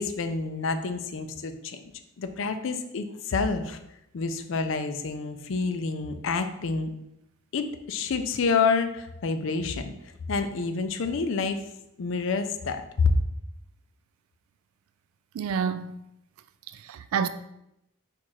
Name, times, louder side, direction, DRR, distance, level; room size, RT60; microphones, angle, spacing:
voice 1, 0.0-1.8 2.2-3.8 4.1-6.9 7.5-9.9 10.3-11.6 12.0-13.1, left 4 dB, 70° left, 0.4 m, -28 dB
voice 2, 15.3-16.0 16.7-17.3, right 6 dB, 90° right, 0.3 m, -29 dB
4.5 x 2.5 x 4.2 m
head